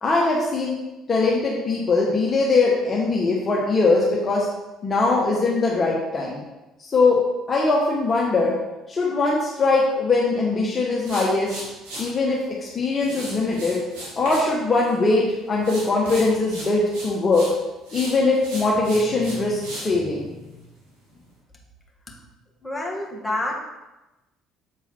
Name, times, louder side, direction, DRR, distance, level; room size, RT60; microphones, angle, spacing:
voice 1, 0.0-0.7 1.1-4.4 4.8-6.4 6.8-7.2 7.5-8.5 8.9-11.6 12.0-13.8 14.1-17.5 17.9-20.2, left 3 dB, 30° left, -4 dB, 1.2 m, -21 dB
sound 1, 11.0-12.1 13.0-14.5 14.8-15.2 15.6-17.5 17.9-19.9, right 1 dB, 65° right, 2.0 m, -36 dB
voice 2, 22.6-23.5, left 1 dB, 10° left, -2 dB, 1.9 m, -28 dB
7.1 x 3.9 x 4.5 m, 1.0 s
figure-of-eight pair, 55°, 0 cm